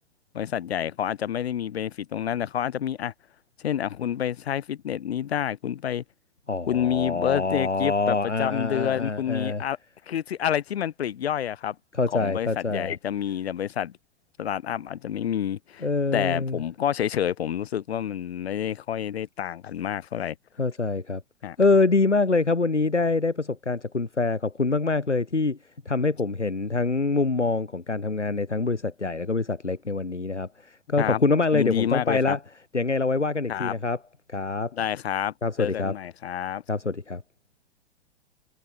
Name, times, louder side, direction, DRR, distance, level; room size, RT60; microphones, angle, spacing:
voice 1, 0.3-3.1 3.6-6.0 6.7-9.8 10.1-11.7 12.1-13.9 14.4-15.9 16.1-20.3 21.4-21.6 31.0-31.2 31.5-32.4 33.5-33.7 34.7-36.6, left 10 dB, 65° left, 6.8 m, -28 dB
voice 2, 6.5-9.6 11.9-12.9 15.8-16.6 20.6-21.2 21.6-25.6 25.9-32.4 32.7-34.0 34.3-34.7 35.4-35.9 36.7-37.2, left 3 dB, 90° left, 2.8 m, -25 dB
figure-of-eight pair, 110°, 34 cm